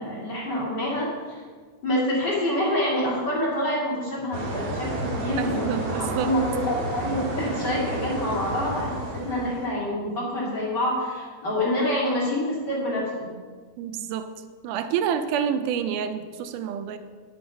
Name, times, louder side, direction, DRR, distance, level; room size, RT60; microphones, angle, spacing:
voice 1, 0.0-1.4 1.8-13.3, left 1 dB, 35° left, -6 dB, 3.3 m, -27 dB
sound 1, 4.3-9.7, right 1 dB, 55° right, 2.6 m, -31 dB
voice 2, 5.4-6.3 13.8-14.3 14.6-17.0, right 8 dB, 85° right, 9 dB, 2.2 m, -28 dB
9.6 x 7.6 x 5.4 m, 1.5 s
omnidirectional pair, 3.6 m